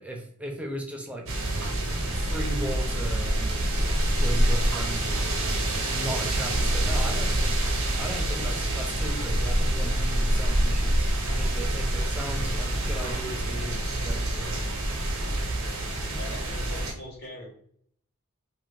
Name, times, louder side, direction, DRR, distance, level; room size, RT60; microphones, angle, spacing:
voice 1, 0.0-1.3 2.1-3.8 4.2-5.3 5.9-14.6, right 1 dB, 5° right, 2 dB, 0.5 m, -37 dB
sound 1, 1.3-16.9, right 1 dB, 85° right, 0.7 m, -26 dB
voice 2, 8.3-8.6 16.1-17.5, equal, 50° left, -3 dB, 1.1 m, -41 dB
2.5 x 2.5 x 3.2 m, 0.62 s
head